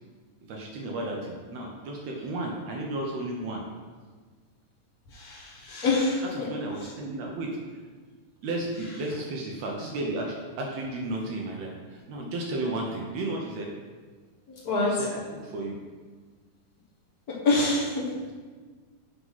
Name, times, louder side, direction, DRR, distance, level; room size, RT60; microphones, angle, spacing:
voice 1, 0.5-3.6 6.2-7.6 8.4-13.7 14.9-15.8 18.3-18.4, right 2 dB, 70° right, -1 dB, 1.7 m, -33 dB
voice 2, 5.1-6.5 14.6-14.9 17.4-18.1, left 2 dB, 70° left, -5 dB, 0.8 m, -25 dB
7.9 x 3.8 x 5.6 m, 1.5 s
omnidirectional pair, 3.8 m